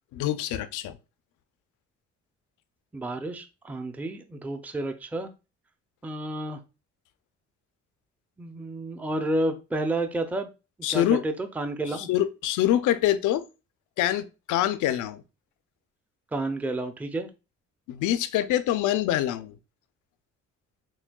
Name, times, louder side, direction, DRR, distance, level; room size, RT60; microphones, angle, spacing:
voice 1, 0.1-1.0 10.8-11.2 11.9-13.5 14.0-15.2 17.9-19.5, left 12 dB, 80° left, 0.5 m, -25 dB
voice 2, 2.9-5.3 6.0-6.6 8.4-10.5 10.9-12.1 16.3-17.3, right 2 dB, 5° right, 0.4 m, -30 dB
6.0 x 2.2 x 2.2 m
cardioid pair, 90°, 30 cm